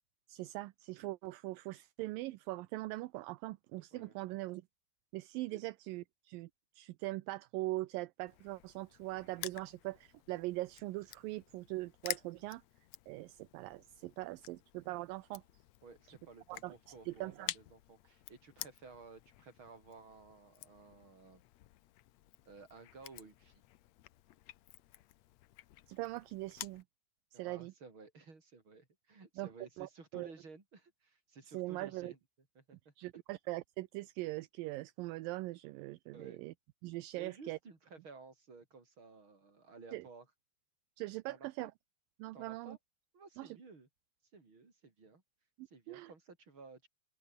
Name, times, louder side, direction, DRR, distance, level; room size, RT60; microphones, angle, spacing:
voice 1, 0.3-4.6 5.1-6.5 6.8-12.6 13.1-15.4 16.5-16.7 17.1-17.5 25.9-26.8 27.3-27.7 29.4-29.5 29.8-30.3 31.5-32.1 33.0-36.5 36.8-37.6 39.9-40.1 41.0-41.7 42.2-42.8 43.4-43.6 45.6-46.1, right 19 dB, 80° right, 2.3 m, -41 dB
Crushing, 8.3-26.8, left 15 dB, 80° left, 1.5 m, -50 dB
voice 2, 15.8-21.4 22.5-23.6 27.3-32.2 32.6-32.9 36.1-36.4 37.2-40.3 41.3-41.7 42.3-42.8 43.1-43.9 44.3-45.2 45.7-46.9, right 4 dB, 35° right, 5.4 m, -55 dB
open air
omnidirectional pair, 4.2 m